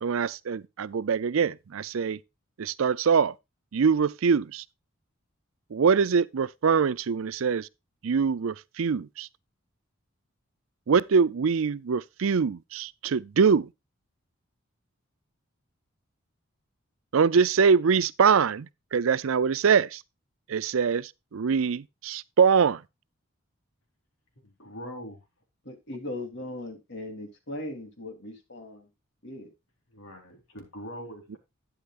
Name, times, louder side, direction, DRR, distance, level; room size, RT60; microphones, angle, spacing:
voice 1, 0.0-2.2 2.6-3.3 3.7-4.6 5.7-7.7 8.0-9.3 10.9-13.7 17.1-18.7 18.9-20.0 20.5-22.8, right 6 dB, 70° right, 0.5 m, -23 dB
voice 2, 24.4-25.2 29.9-31.4, equal, 75° left, 3.8 m, -42 dB
voice 3, 25.6-28.9 29.2-29.5, left 1 dB, 55° left, 3.4 m, -38 dB
11.5 x 9.8 x 2.5 m
head